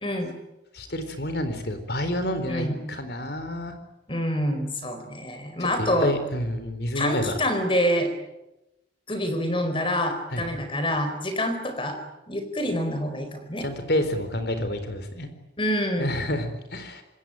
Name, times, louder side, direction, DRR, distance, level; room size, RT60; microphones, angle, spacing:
voice 1, 0.0-0.3 2.5-2.8 4.1-6.1 6.9-8.1 9.1-12.0 12.3-13.7 15.6-16.1, equal, 30° left, 8 dB, 4.6 m, -26 dB
voice 2, 0.7-3.7 5.6-7.4 10.3-10.6 13.6-15.3 16.0-17.0, left 1 dB, 60° left, 9 dB, 4.1 m, -29 dB
26.5 x 21.0 x 9.1 m, 0.95 s
head